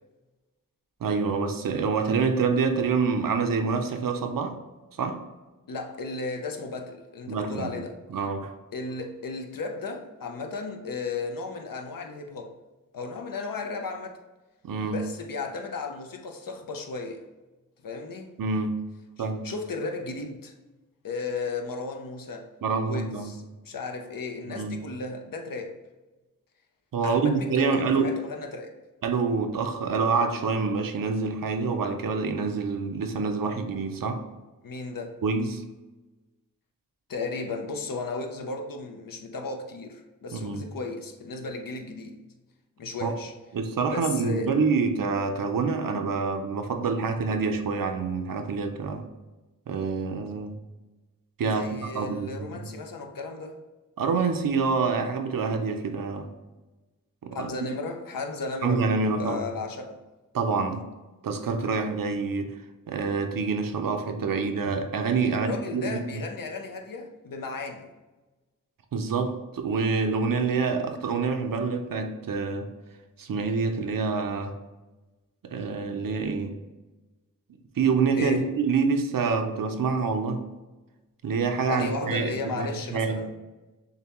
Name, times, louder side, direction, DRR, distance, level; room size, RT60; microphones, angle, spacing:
voice 1, 1.0-4.6 5.0-5.2 7.3-7.7 8.1-8.5 14.6-15.0 18.4-18.7 19.2-19.5 22.6-23.4 24.5-24.7 26.9-28.1 29.0-34.2 35.2-35.6 40.3-40.6 43.0-43.1 43.5-49.1 49.7-50.5 51.4-52.7 54.0-56.3 57.2-57.5 58.6-59.5 60.3-60.9 61.2-62.5 62.9-66.0 68.9-72.7 73.2-74.6 75.4-76.5 77.8-80.5 81.2-83.2, right 4 dB, 85° right, 0.6 m, -27 dB
voice 2, 5.7-8.0 8.7-12.5 12.9-14.2 14.8-17.2 17.8-18.3 19.2-20.5 21.0-22.5 22.9-25.8 27.0-28.8 34.6-35.2 37.1-42.2 42.8-43.3 43.9-44.5 51.5-53.6 57.3-58.8 59.1-60.0 65.3-67.9 78.1-78.5 81.7-83.3, left 3 dB, 85° left, 0.6 m, -35 dB
6.6 x 2.2 x 2.9 m
wide cardioid pair, 85°, 33 cm